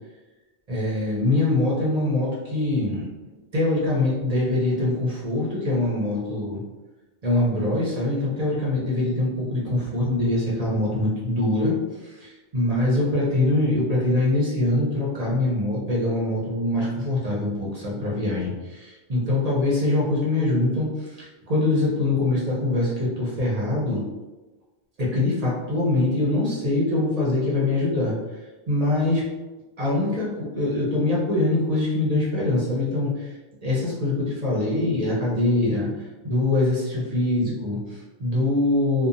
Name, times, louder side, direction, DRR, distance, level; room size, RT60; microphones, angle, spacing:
voice 1, 0.7-3.0 3.5-6.6 7.2-11.7 12.2-24.0 25.0-28.1 28.7-29.2 29.8-33.3 33.6-35.9 36.2-39.1, left 2 dB, 40° right, -6 dB, 0.6 m, -23 dB
2.8 x 2.2 x 2.5 m, 1.2 s
omnidirectional pair, 1.2 m